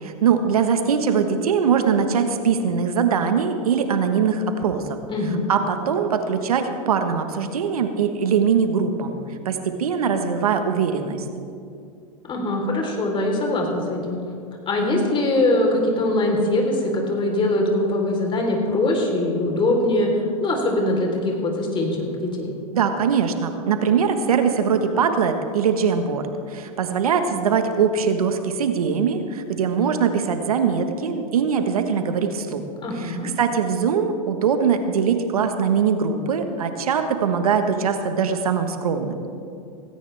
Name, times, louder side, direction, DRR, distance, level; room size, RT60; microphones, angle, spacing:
voice 1, 0.0-5.0 5.5-9.2 9.4-11.2 22.7-32.6 33.0-39.2, right 6 dB, 85° right, 7 dB, 1.4 m, -22 dB
voice 2, 5.1-5.4 12.3-14.2 14.7-20.1 20.4-22.5 32.8-33.3, left 2 dB, 25° left, 0 dB, 3.8 m, -22 dB
17.5 x 16.5 x 3.5 m, 2.4 s
hypercardioid pair, 105°, 18 cm